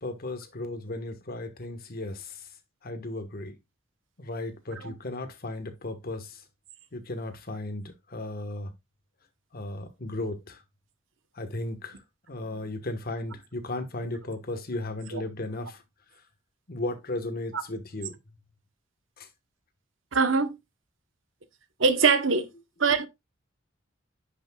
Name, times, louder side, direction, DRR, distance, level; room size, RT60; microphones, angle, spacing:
voice 1, 0.0-2.3 2.8-3.5 4.2-6.3 6.9-7.8 8.1-8.7 9.5-10.6 11.4-11.9 12.3-15.8 16.7-18.1, left 2 dB, 50° left, 1.3 m, -35 dB
voice 2, 20.1-20.5 21.8-22.5 22.8-23.1, right 5 dB, 70° right, 1.0 m, -23 dB
9.9 x 6.0 x 2.3 m
head